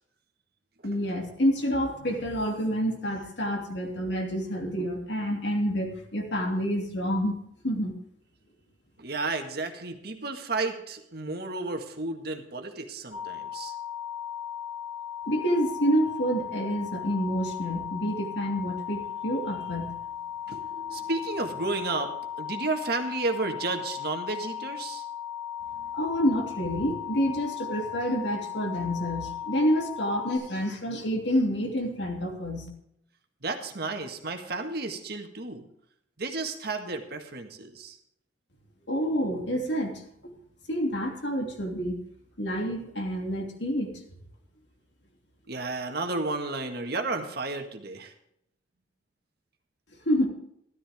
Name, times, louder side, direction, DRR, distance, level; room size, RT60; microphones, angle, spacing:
voice 1, 0.8-7.4 7.6-7.9 15.3-20.0 25.8-32.7 38.9-40.0 40.7-42.0 42.4-44.0 50.1-50.3, equal, 70° left, 2 dB, 2.9 m, -28 dB
voice 2, 9.0-13.7 20.5-25.1 33.4-35.6 36.2-38.0 45.5-48.1, right 3 dB, 55° right, 5 dB, 1.7 m, -32 dB
sound 1, 13.1-30.4, left 10 dB, 15° right, 6.4 m, -37 dB
13.5 x 12.5 x 3.6 m, 0.75 s
head